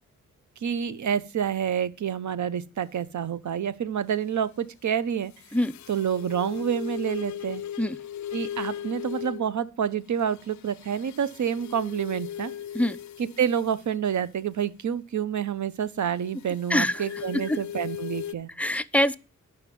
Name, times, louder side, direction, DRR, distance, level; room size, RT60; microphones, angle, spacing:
voice 1, 0.6-5.3 5.9-7.6 8.3-12.5 13.4-18.5, right 8 dB, 65° right, 0.9 m, -28 dB
sound 1, 5.3-9.5 10.2-13.9 16.4-18.3, left 10 dB, 65° left, 0.4 m, -38 dB
voice 2, 16.7-17.1 17.3-17.6 18.6-19.2, left 1 dB, 5° left, 0.5 m, -24 dB
9.2 x 5.7 x 5.3 m
cardioid pair, 55°, 32 cm